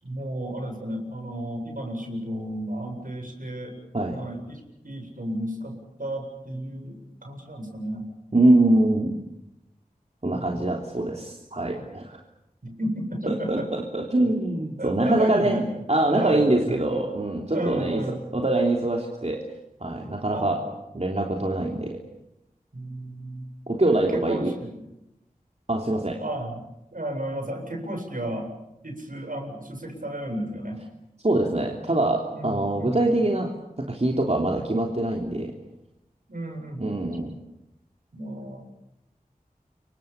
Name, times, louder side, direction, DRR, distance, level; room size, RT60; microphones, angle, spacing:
voice 1, 0.0-3.7 4.1-8.0 10.4-10.6 12.6-13.7 14.2-14.4 14.8-15.6 16.1-16.8 17.5-18.2 20.3-20.7 22.7-23.5 23.9-24.8 26.2-26.6 26.9-28.5 28.8-30.8 32.3-33.0 36.3-36.9 38.1-38.7, right 1 dB, 70° right, 3 dB, 7.8 m, -33 dB
voice 2, 8.3-9.2 10.2-12.2 13.3-19.5 19.8-20.6 20.9-22.0 23.7-24.6 25.7-26.2 31.2-35.5 36.8-37.4, right 2 dB, 45° right, 1 dB, 3.3 m, -24 dB
29.0 x 25.0 x 7.2 m, 0.89 s
wide cardioid pair, 45°, 15 cm